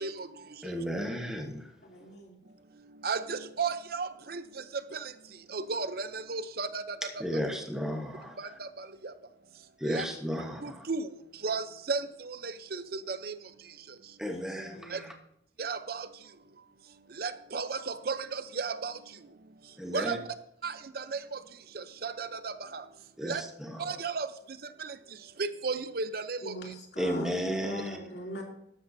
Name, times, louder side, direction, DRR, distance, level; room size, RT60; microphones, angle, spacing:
voice 1, 0.6-1.7 7.0-8.6 9.8-10.9 14.2-15.1 19.8-20.2 23.2-24.0 27.0-28.0, equal, 5° right, 1.1 m, -34 dB
voice 2, 1.8-2.4 14.3-15.1 26.4-28.4, right 1 dB, 65° left, 2.9 m, -42 dB
voice 3, 6.3-6.7 10.9-11.0 11.4-11.6 11.9-12.0 15.6-15.8 17.2-17.6 18.6-18.9 19.9-20.1 23.3-23.4 24.2-24.3 25.6-26.4, right 4 dB, 55° right, 0.7 m, -30 dB
13.0 x 12.5 x 2.7 m
head